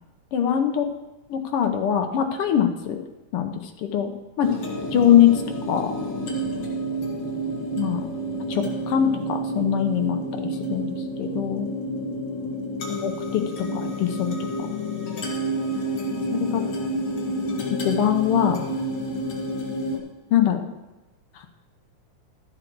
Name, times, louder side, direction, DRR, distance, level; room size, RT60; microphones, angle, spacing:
voice 1, 0.3-0.9 1.3-3.0 3.3-4.5 4.9-5.9 7.8-8.1 8.5-11.7 12.9-13.4 13.7-14.7 16.3-16.6 17.7-18.6 20.3-20.7, left 10 dB, 70° left, 5 dB, 1.4 m, -23 dB
sound 1, 4.4-20.0, right 1 dB, 50° left, 2.1 m, -29 dB
12.5 x 7.8 x 4.6 m, 1.1 s
omnidirectional pair, 3.3 m